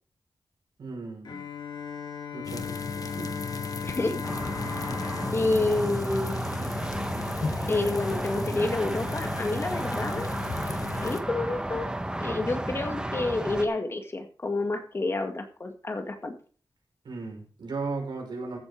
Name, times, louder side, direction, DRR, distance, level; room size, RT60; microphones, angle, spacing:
voice 1, 0.8-1.3 2.3-2.6 3.0-3.3 17.0-18.6, right 3 dB, 85° right, 1 dB, 5.7 m, -35 dB
Bowed string instrument, 1.2-7.1, left 7 dB, 90° left, 3.4 m, -38 dB
sound 1, 2.4-11.2, left 4 dB, 55° left, 1.2 m, -35 dB
voice 2, 3.8-4.2 5.3-6.4 7.4-10.3 11.0-11.9 12.2-16.3, left 2 dB, 35° left, 6 dB, 2.0 m, -29 dB
sound 2, 4.2-13.6, right 1 dB, 10° right, 1.3 m, -33 dB
15.0 x 7.8 x 5.1 m, 0.40 s
wide cardioid pair, 150°, 7 cm